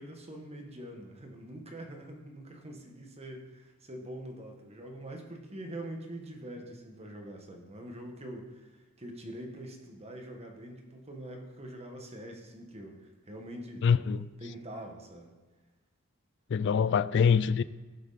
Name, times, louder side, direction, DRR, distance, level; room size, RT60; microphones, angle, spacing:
voice 1, 0.0-13.9 14.4-15.4, right 1 dB, 30° right, 1.6 m, -44 dB
voice 2, 13.8-14.3 16.5-17.6, left 6 dB, 55° left, 0.3 m, -24 dB
17.0 x 6.5 x 4.2 m
head